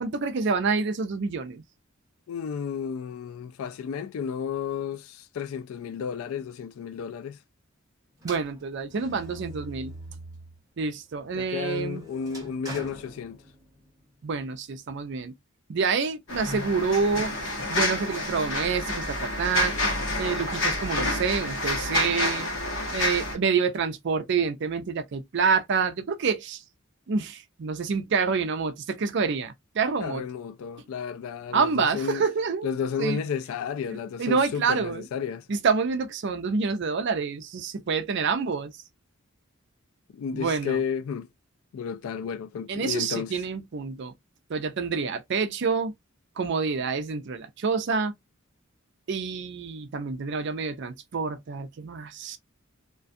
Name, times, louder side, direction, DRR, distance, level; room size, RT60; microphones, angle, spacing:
voice 1, 0.0-1.6 8.2-9.9 10.8-12.0 14.2-15.3 15.7-17.3 17.7-19.7 20.2-22.5 22.9-26.6 27.1-30.3 31.5-32.7 33.0-33.2 34.2-35.1 35.5-38.8 40.3-40.8 42.7-44.1 44.5-45.9 46.4-48.1 49.1-52.4, right 5 dB, 60° right, 0.5 m, -27 dB
voice 2, 2.3-7.4 11.4-13.4 30.0-32.2 32.6-35.4 40.1-41.3 41.7-43.3, left 7 dB, 85° left, 0.3 m, -32 dB
sound 1, 8.2-10.6 11.1-13.9, right 1 dB, 15° right, 0.9 m, -43 dB
sound 2, 16.3-23.3, left 2 dB, 65° left, 0.9 m, -28 dB
2.5 x 2.3 x 2.4 m
head